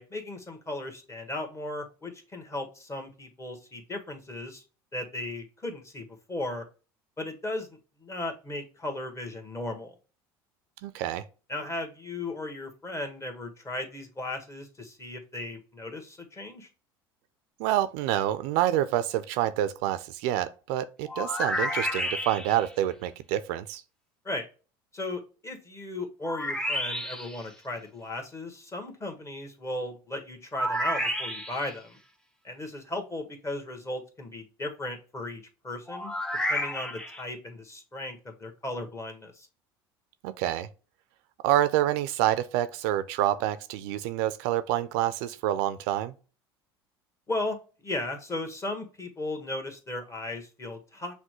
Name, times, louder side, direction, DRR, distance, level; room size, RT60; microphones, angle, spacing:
voice 1, 0.0-4.6 4.9-6.6 7.2-7.7 8.0-10.0 11.5-16.7 24.2-24.4 24.9-32.0 32.4-36.1 36.5-39.5 47.3-47.6 47.8-51.1, left 2 dB, 20° left, 1.3 m, -36 dB
voice 2, 10.8-11.2 17.6-23.8 40.2-40.7 41.4-46.1, right 13 dB, 65° right, 0.4 m, -27 dB
sound 1, 21.1-22.7 26.2-27.4 30.5-31.7 35.9-37.2, equal, 5° left, 0.6 m, -30 dB
5.8 x 2.2 x 2.9 m
hypercardioid pair, 75°, 13 cm